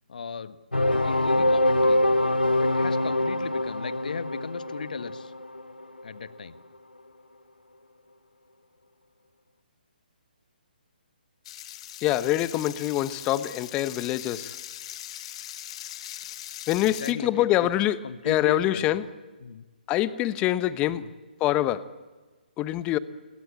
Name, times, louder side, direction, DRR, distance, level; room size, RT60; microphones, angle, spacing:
voice 1, 0.1-0.6 0.9-2.0 2.5-5.3 6.0-6.6 16.8-17.7 18.0-19.1 19.4-19.6 20.9-21.1, left 5 dB, 60° left, 12 dB, 1.5 m, -37 dB
sound 1, 0.7-6.4, left 1 dB, 85° left, 2.0 m, -24 dB
sound 2, 11.4-17.1, left 12 dB, 35° left, 1.2 m, -40 dB
voice 2, 12.0-14.5 16.7-18.0 18.2-19.0 19.9-21.1 21.4-21.8 22.6-23.0, left 14 dB, 20° left, 15 dB, 1.0 m, -25 dB
29.5 x 22.0 x 8.7 m, 1.3 s
figure-of-eight pair, 135°, 5 cm